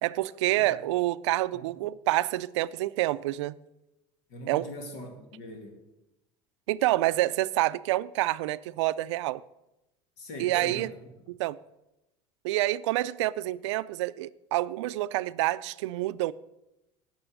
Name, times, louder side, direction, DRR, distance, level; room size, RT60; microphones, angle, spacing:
voice 1, 0.0-3.6 4.5-4.7 6.7-9.4 10.4-10.9 11.3-11.6 12.4-16.3, right 17 dB, 85° right, 0.4 m, -27 dB
voice 2, 4.3-5.8 10.2-11.0, equal, 75° left, 2.5 m, -41 dB
9.9 x 6.2 x 8.8 m
supercardioid pair, 95°, 15 cm